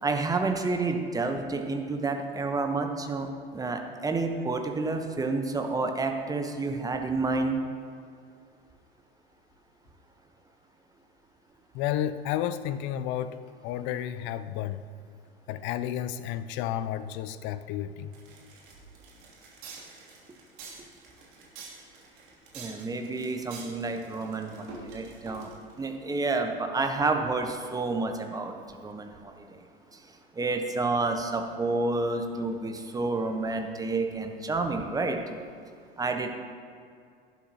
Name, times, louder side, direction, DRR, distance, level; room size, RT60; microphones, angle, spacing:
voice 1, 0.0-3.3 3.5-7.6 22.5-25.5 25.8-28.5 28.8-29.3 30.4-35.4 36.0-36.3, right 3 dB, 10° right, 5 dB, 1.1 m, -29 dB
voice 2, 11.7-13.4 13.6-14.8 15.5-18.1, left 11 dB, 40° left, 13 dB, 0.6 m, -31 dB
sound 1, 18.1-25.8, right 4 dB, 50° right, 2.9 m, -47 dB
18.0 x 11.5 x 3.0 m, 2.3 s
figure-of-eight pair, 85°, 31 cm